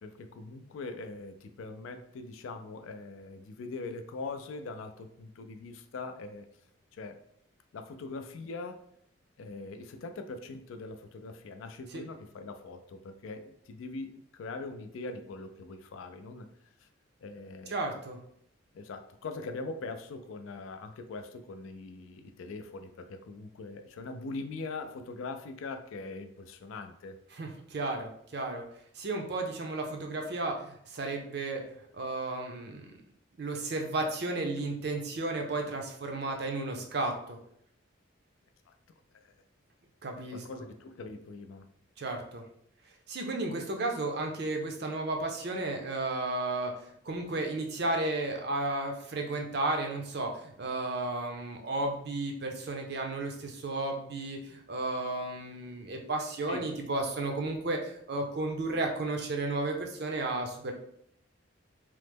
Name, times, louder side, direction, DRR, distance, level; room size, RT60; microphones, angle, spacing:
voice 1, 0.0-6.5 6.9-7.2 7.7-8.8 9.4-16.5 16.8-16.9 17.2-17.8 18.7-27.2 38.7-38.8 39.2-39.3 40.3-41.7 56.5-56.6, left 3 dB, 80° left, 7 dB, 0.3 m, -42 dB
voice 2, 17.7-18.2 27.3-28.6 28.9-32.9 33.4-37.4 40.0-40.4 42.0-42.4 43.1-46.7 47.0-60.7, right 2 dB, 50° right, 3 dB, 0.5 m, -33 dB
3.1 x 2.0 x 3.3 m, 0.70 s
head